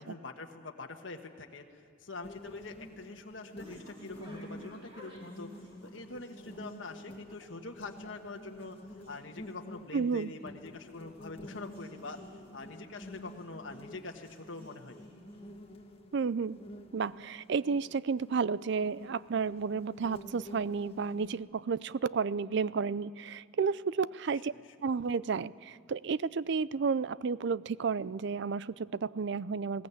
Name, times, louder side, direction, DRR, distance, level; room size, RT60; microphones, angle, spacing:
voice 1, 0.0-5.5 5.8-8.8 9.1-12.2 12.5-15.1 24.5-24.7, left 3 dB, 75° left, 3 dB, 1.4 m, -45 dB
sound 1, 2.2-21.4, equal, 30° left, 1.6 m, -50 dB
sound 2, 2.2-15.8, equal, 30° right, 5.7 m, -58 dB
voice 2, 9.9-10.3 16.1-16.6 16.9-24.5 24.8-29.9, right 5 dB, 60° right, 19 dB, 0.4 m, -32 dB
21.0 x 18.0 x 8.4 m, 2.4 s
head